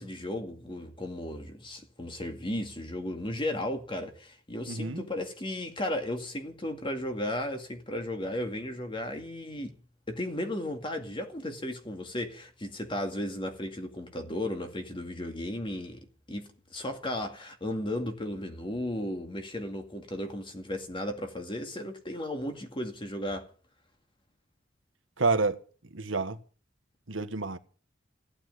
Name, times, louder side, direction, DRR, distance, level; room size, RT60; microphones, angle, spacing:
voice 1, 0.0-9.8 10.1-16.0 16.3-23.5, left 1 dB, 25° left, 2.1 m, -35 dB
voice 2, 4.7-5.1 25.2-25.6 25.9-26.4 27.1-27.6, right 3 dB, 80° right, 1.5 m, -28 dB
16.5 x 8.8 x 9.6 m
head